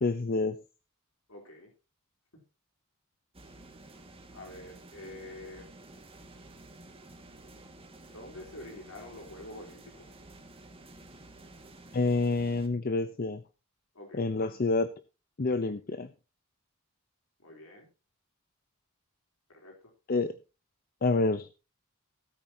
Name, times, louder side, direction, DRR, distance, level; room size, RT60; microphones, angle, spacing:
voice 1, 0.0-0.6 11.9-13.4 14.1-14.9 15.4-16.1 20.1-20.3 21.0-21.5, left 3 dB, 45° left, 12 dB, 0.7 m, -28 dB
voice 2, 1.3-1.7 4.3-5.7 8.0-10.1 13.9-14.3 17.4-17.9 19.5-19.7, left 1 dB, 80° left, 1 dB, 3.4 m, -47 dB
sound 1, 3.3-12.7, right 2 dB, 25° right, 1.8 m, -51 dB
17.0 x 8.8 x 2.8 m, 0.31 s
head